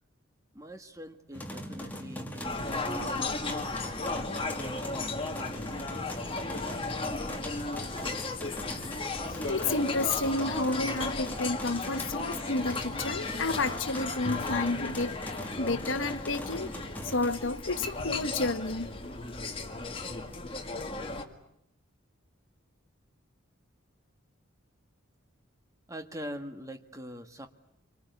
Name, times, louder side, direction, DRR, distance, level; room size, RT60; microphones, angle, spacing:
voice 1, 0.5-4.0 25.9-27.5, equal, 15° right, 1.7 m, -43 dB
sound 1, 1.3-17.4, equal, 10° left, 2.3 m, -42 dB
sound 2, 2.4-21.3, left 3 dB, 25° left, 1.9 m, -35 dB
voice 2, 9.2-15.3 15.6-16.7 17.0-18.9, left 3 dB, 65° left, 1.2 m, -31 dB
27.5 x 24.5 x 8.4 m
head